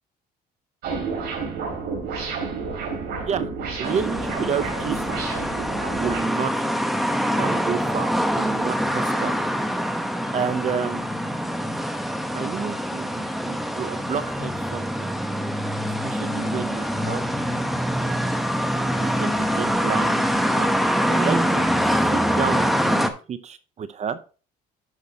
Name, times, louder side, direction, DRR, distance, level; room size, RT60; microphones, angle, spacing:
sound 1, 0.8-6.2, right 5 dB, 75° right, 3.6 m, -30 dB
sound 2, 3.8-23.1, equal, ahead, 0.9 m, -24 dB
voice 1, 3.8-5.1 5.9-6.7 7.4-9.6 10.3-11.2 12.3-15.1 16.0-17.2 19.0-20.2 20.5-20.7 21.1-21.7 22.1-24.2, right 7 dB, 40° right, 13 dB, 0.7 m, -30 dB
10.5 x 6.0 x 2.9 m, 0.35 s
cardioid pair, 110°, 17 cm